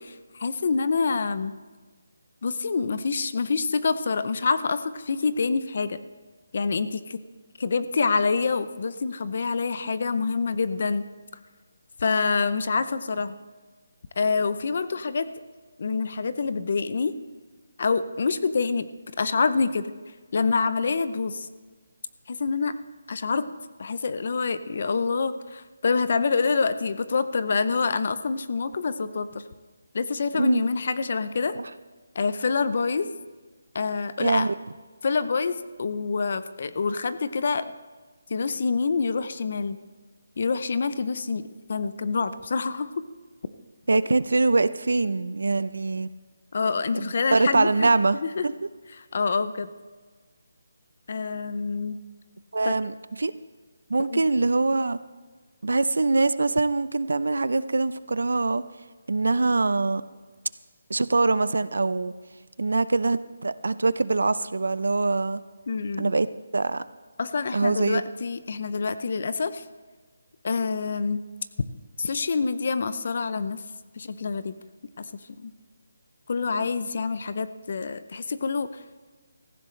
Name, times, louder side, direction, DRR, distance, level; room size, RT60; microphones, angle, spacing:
voice 1, 0.0-1.5 2.4-6.0 6.5-7.2 7.6-11.1 12.0-13.3 14.2-15.3 15.8-17.1 17.8-18.9 19.2-19.9 20.3-21.5 22.3-22.8 23.1-23.5 23.8-29.4 29.9-31.6 32.1-33.1 33.7-34.5 35.0-37.7 38.3-39.8 40.4-41.4 41.7-43.0 46.5-47.9 48.2-48.4 49.0-49.7 51.1-52.0 52.6-52.7 54.1-54.2 65.7-66.1 67.2-69.6 70.4-71.3 72.0-73.6 74.0-74.5 75.0-75.1 75.4-75.5 76.3-78.8, left 4 dB, 40° left, 13 dB, 0.6 m, -26 dB
voice 2, 30.3-30.6 31.6-31.7 34.2-34.5 43.9-46.1 46.9-48.5 52.5-53.3 53.9-55.0 55.6-58.6 59.1-60.0 60.9-62.1 62.6-65.4 66.0-66.3 66.5-66.8 67.5-68.0, right 3 dB, 80° right, 15 dB, 0.6 m, -23 dB
16.5 x 15.0 x 3.2 m, 1.4 s
hypercardioid pair, 180°, 0 cm